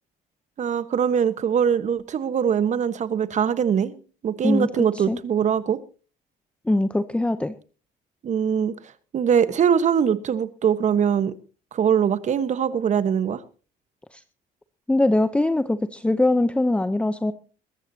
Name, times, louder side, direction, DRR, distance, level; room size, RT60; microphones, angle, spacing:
voice 1, 0.6-5.8 8.2-8.7 9.1-11.3 11.7-13.4, right 8 dB, 45° right, 1.2 m, -22 dB
voice 2, 6.7-7.6 14.1-14.2 14.9-17.3, left 2 dB, 5° left, 0.7 m, -22 dB
22.0 x 14.5 x 2.8 m
cardioid pair, 110°, 17 cm